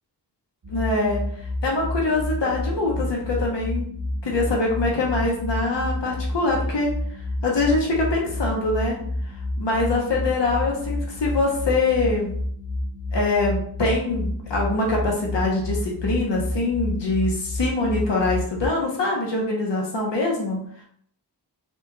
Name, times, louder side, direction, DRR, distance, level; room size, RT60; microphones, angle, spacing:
sound 1, 0.6-18.7, left 1 dB, 50° right, 0.7 m, -29 dB
voice 1, 0.7-1.2 1.6-3.9 4.2-6.9 7.4-9.0 9.6-12.4 13.1-20.8, left 2 dB, 85° left, -2 dB, 1.0 m, -24 dB
4.2 x 3.0 x 2.2 m, 0.63 s
wide cardioid pair, 85°, 42 cm